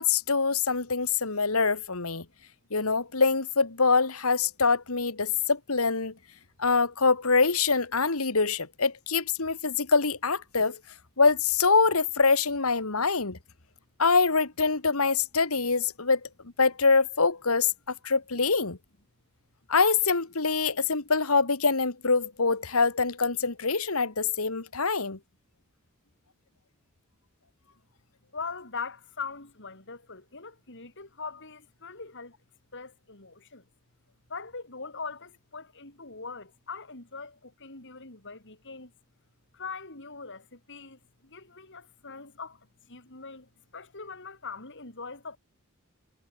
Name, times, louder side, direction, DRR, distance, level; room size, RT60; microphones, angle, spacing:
voice 1, 0.0-2.3 2.7-6.1 6.6-10.8 11.2-13.4 14.0-16.3 16.6-18.8 19.7-25.2, left 4 dB, 75° left, 2.0 m, -24 dB
voice 2, 28.3-32.3 32.7-33.6 34.3-38.9 39.5-42.6 42.9-45.4, left 4 dB, 55° left, 5.5 m, -41 dB
head